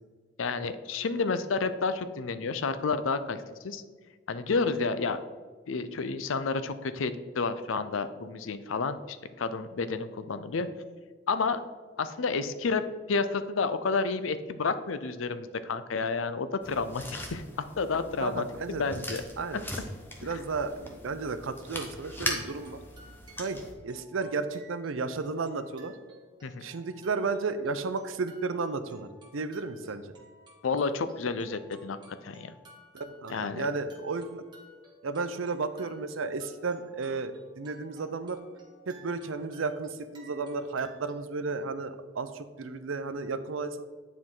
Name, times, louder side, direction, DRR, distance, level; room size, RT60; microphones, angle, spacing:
voice 1, 0.4-3.8 4.3-5.2 5.7-10.7 11.3-11.6 12.0-12.8 13.1-17.4 17.8-19.2 20.3-20.4 26.4-26.6 30.6-32.5 33.3-33.7, left 4 dB, 85° left, 12 dB, 0.5 m, -30 dB
sound 1, 16.6-23.7, left 1 dB, 10° left, 0.8 m, -40 dB
voice 2, 18.2-19.0 19.4-19.7 20.2-22.8 23.4-25.9 26.6-30.1 32.9-34.5 35.0-38.4 38.9-43.9, right 4 dB, 90° right, 11 dB, 0.6 m, -33 dB
sound 2, 22.4-41.1, right 1 dB, 20° right, 1.3 m, -56 dB
9.7 x 4.7 x 3.8 m, 1.5 s
head